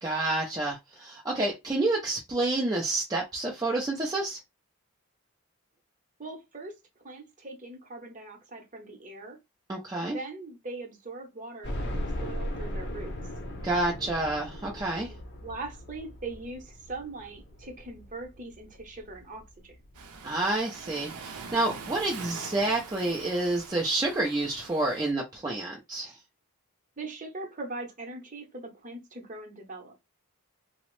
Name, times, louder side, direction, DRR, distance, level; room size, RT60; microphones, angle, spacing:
voice 1, 0.0-4.4 9.7-10.2 13.6-15.1 20.2-26.2, right 2 dB, 15° right, 0.4 m, -29 dB
voice 2, 6.2-6.7 7.0-9.4 10.0-13.1 14.7-19.8 27.0-29.9, right 2 dB, 35° right, 0.8 m, -41 dB
sound 1, 11.6-20.5 21.0-21.1 21.5-21.6 22.8-22.9 23.2-23.3, equal, 50° left, 0.7 m, -38 dB
Waves surf, 19.9-25.1, right 5 dB, 85° right, 0.6 m, -43 dB
2.9 x 2.0 x 3.0 m
head